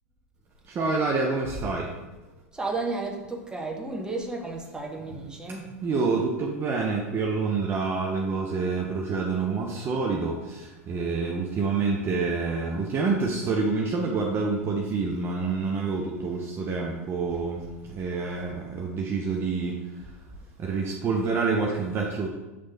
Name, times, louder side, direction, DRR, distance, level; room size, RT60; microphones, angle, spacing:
voice 1, 0.8-1.9 5.8-10.3 10.9-17.6 17.9-19.7 20.6-22.3, right 4 dB, 30° right, 0 dB, 0.6 m, -27 dB
voice 2, 2.5-5.8, right 3 dB, 10° right, 0 dB, 0.9 m, -33 dB
7.4 x 3.1 x 2.2 m, 1.1 s
hypercardioid pair, 95°, 8 cm